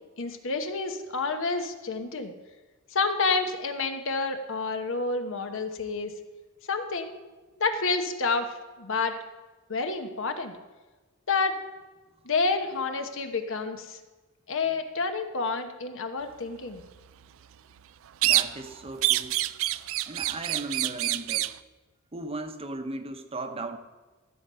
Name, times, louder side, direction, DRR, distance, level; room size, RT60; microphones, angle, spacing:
voice 1, 0.2-2.3 2.9-6.1 6.7-7.2 7.6-8.5 8.8-9.2 9.7-10.5 11.3-11.5 12.2-14.0 14.5-16.8, left 4 dB, 65° left, 7 dB, 1.1 m, -29 dB
voice 2, 18.2-19.4 20.1-21.5 22.1-23.8, right 2 dB, 30° right, 7 dB, 0.9 m, -37 dB
sound 1, 18.2-18.7 19.0-21.6, right 15 dB, 65° right, 0.4 m, -26 dB
14.0 x 7.7 x 5.6 m, 1.2 s
head